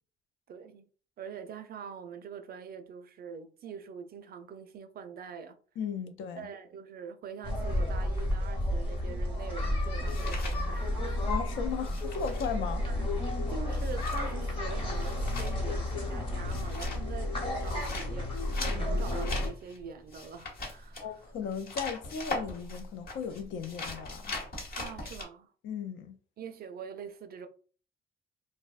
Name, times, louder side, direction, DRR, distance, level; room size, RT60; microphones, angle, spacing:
voice 1, 0.5-0.8 1.2-5.5 6.4-11.4 12.9-13.1 13.5-21.1 24.8-25.5 26.4-27.5, right 6 dB, 50° right, 0.4 m, -44 dB
voice 2, 5.8-6.5 11.3-12.9 21.0-24.4 25.6-26.2, left 6 dB, 75° left, 0.4 m, -36 dB
sound 1, 7.4-19.5, left 1 dB, 25° left, 0.9 m, -32 dB
sound 2, 9.2-11.3 11.6-25.2, left 2 dB, 50° left, 1.0 m, -41 dB
2.6 x 2.0 x 2.3 m
cardioid pair, 90°, 20 cm